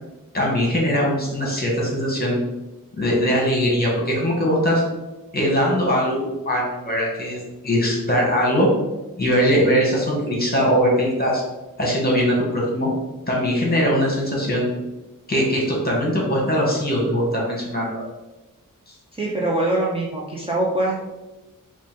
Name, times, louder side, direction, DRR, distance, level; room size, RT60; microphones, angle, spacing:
voice 1, 0.3-2.4 3.0-4.8 5.3-8.7 9.2-11.4 11.8-12.9 13.3-14.7 15.3-17.9, equal, 25° left, -3 dB, 1.2 m, -21 dB
voice 2, 19.1-21.1, right 1 dB, 15° right, -5 dB, 0.5 m, -23 dB
3.8 x 2.5 x 3.7 m, 1.1 s
wide cardioid pair, 130°, 34 cm